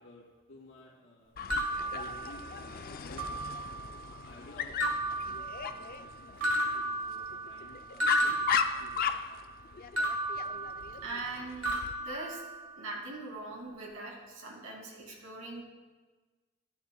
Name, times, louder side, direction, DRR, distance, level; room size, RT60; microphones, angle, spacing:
voice 1, 0.0-1.3 1.9-3.3 3.7-9.7, left 2 dB, 65° left, -6 dB, 2.7 m, -54 dB
Dog, 1.4-11.9, left 7 dB, 45° left, 0.4 m, -37 dB
sound 1, 1.5-2.8 3.2-3.9 4.8-6.1 6.4-9.4 10.0-11.3 11.6-13.0, right 1 dB, 60° right, 1.5 m, -34 dB
voice 2, 11.0-12.4 12.8-15.6, right 2 dB, 90° right, -1 dB, 2.3 m, -41 dB
13.5 x 9.5 x 2.3 m, 1.3 s
head